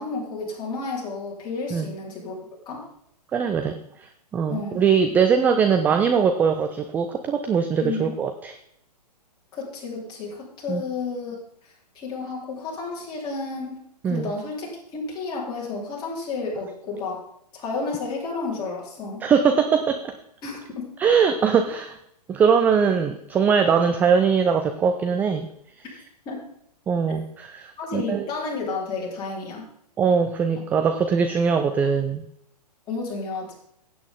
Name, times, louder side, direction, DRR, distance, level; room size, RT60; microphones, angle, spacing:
voice 1, 0.0-2.3 2.7-2.8 4.5-4.8 7.8-8.1 9.5-11.4 11.6-13.8 14.0-17.2 17.5-19.2 20.4-20.9 26.3-26.4 27.8-29.7 32.9-33.6, left 4 dB, 20° left, -3 dB, 3.9 m, -31 dB
voice 2, 3.3-8.5 10.7-10.8 14.0-14.3 19.2-20.1 21.0-22.0 22.3-25.5 26.9-28.3 30.0-32.3, right 6 dB, 10° right, 7 dB, 0.4 m, -21 dB
15.5 x 8.6 x 3.7 m, 0.73 s
figure-of-eight pair, 115°, 21 cm